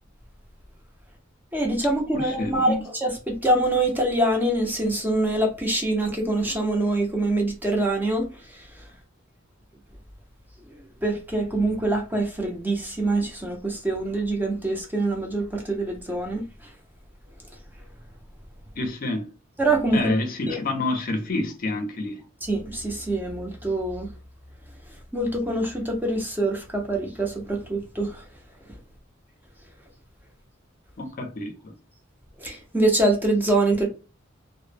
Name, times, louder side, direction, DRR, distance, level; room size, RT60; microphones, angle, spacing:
voice 1, 1.5-8.3 11.0-16.5 19.6-20.0 20.5-20.6 22.4-24.1 25.1-28.2 32.4-33.9, right 2 dB, 10° right, 0.5 m, -24 dB
voice 2, 2.1-2.8 18.8-19.3 19.9-22.2 31.0-31.7, left 2 dB, 45° left, 0.5 m, -28 dB
2.0 x 2.0 x 3.2 m
head